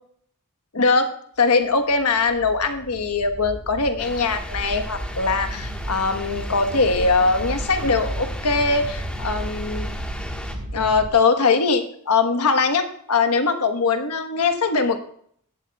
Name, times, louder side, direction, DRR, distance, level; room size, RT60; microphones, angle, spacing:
voice 1, 0.7-1.1 1.4-9.9 10.7-15.0, left 4 dB, 90° left, 8 dB, 1.2 m, -21 dB
sound 1, 1.9-11.1, equal, 65° right, 1.6 m, -33 dB
sound 2, 4.0-10.6, left 1 dB, 5° left, 1.4 m, -37 dB
16.5 x 12.0 x 2.3 m, 0.64 s
head